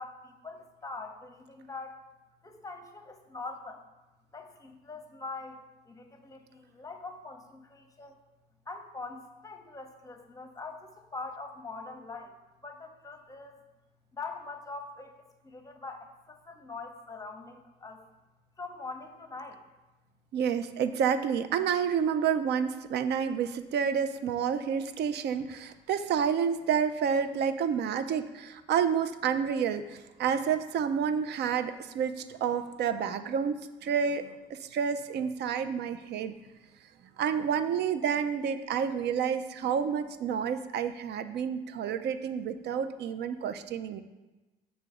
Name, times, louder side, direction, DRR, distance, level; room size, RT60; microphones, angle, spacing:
voice 1, 0.0-2.0 2.4-3.8 4.3-5.6 5.9-8.2 8.7-12.4 12.6-13.5 14.1-15.2 15.4-18.0 18.6-19.6, left 3 dB, 20° left, 5 dB, 0.8 m, -43 dB
voice 2, 20.3-36.3 37.2-44.0, right 7 dB, 65° right, 10 dB, 0.4 m, -29 dB
6.4 x 3.0 x 4.8 m, 1.1 s
cardioid pair, 85°, 19 cm